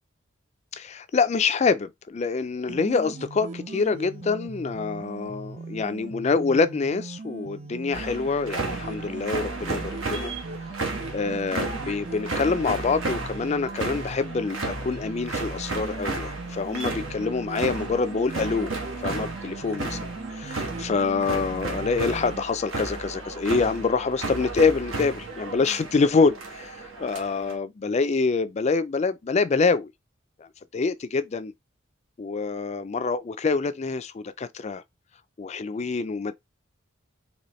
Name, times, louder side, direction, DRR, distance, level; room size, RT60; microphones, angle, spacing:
voice 1, 0.7-10.3 11.1-18.7 19.0-20.0 20.3-29.9 30.4-30.5 30.7-31.5 32.2-34.8 35.4-36.3, left 4 dB, 35° left, 0.4 m, -26 dB
sound 1, 2.7-22.5, right 3 dB, 35° right, 0.4 m, -39 dB
sound 2, 7.9-27.6, right 3 dB, 90° right, 1.2 m, -33 dB
4.1 x 3.0 x 3.1 m
head